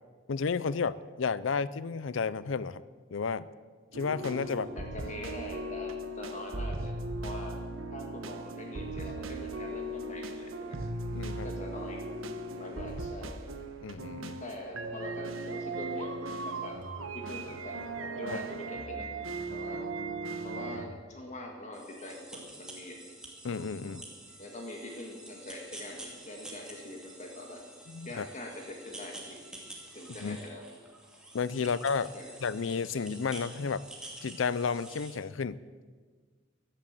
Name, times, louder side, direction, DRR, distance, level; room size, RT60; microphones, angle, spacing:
voice 1, 0.3-2.8 3.1-3.4 3.9-4.7 11.1-11.5 13.8-14.4 18.3-18.4 23.4-24.0 27.9-28.2 30.2-30.4 31.3-32.1 32.4-33.8 34.2-35.6, left 5 dB, 75° left, 17 dB, 0.5 m, -32 dB
sound 1, 3.9-20.9, right 2 dB, 90° right, 1.3 m, -38 dB
voice 2, 4.7-7.6 7.9-10.8 11.4-12.0 12.6-13.3 14.4-16.2 16.4-16.8 17.1-19.1 19.5-19.8 20.4-23.0 23.8-24.0 24.4-27.6 28.1-29.4 29.9-30.6 32.1-32.3, left 1 dB, 35° left, 1 dB, 1.8 m, -43 dB
sound 2, 8.6-18.6, right 1 dB, 25° right, 3.7 m, -61 dB
sound 3, 21.7-35.2, right 1 dB, 5° right, 2.4 m, -48 dB
15.5 x 11.5 x 7.6 m, 1.5 s
head